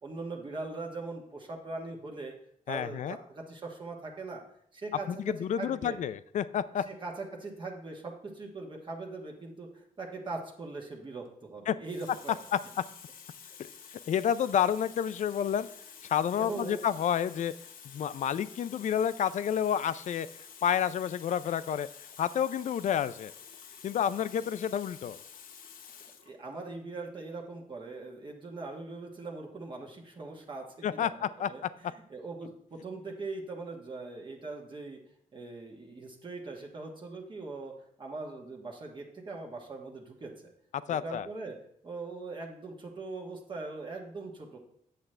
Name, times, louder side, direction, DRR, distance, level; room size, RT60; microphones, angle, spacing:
voice 1, 0.0-2.3 2.7-4.4 4.7-6.0 6.8-12.3 13.5-13.6 16.4-16.8 26.2-35.0 35.3-40.5 40.9-41.6 41.8-44.6, right 3 dB, 35° right, 0 dB, 1.3 m, -41 dB
voice 2, 2.7-3.2 5.1-6.8 11.7-11.8 12.5-12.6 14.1-15.7 16.1-17.5 17.9-20.3 20.6-21.9 22.2-23.3 23.8-25.2 30.8-31.5 40.9-41.3, left 9 dB, 60° left, 15 dB, 0.4 m, -29 dB
Water tap faucet, 11.0-11.3 11.8-26.3 27.2-27.4, left 7 dB, 80° left, 0.7 m, -50 dB
8.2 x 7.6 x 3.3 m, 0.71 s
cardioid pair, 120°, 14 cm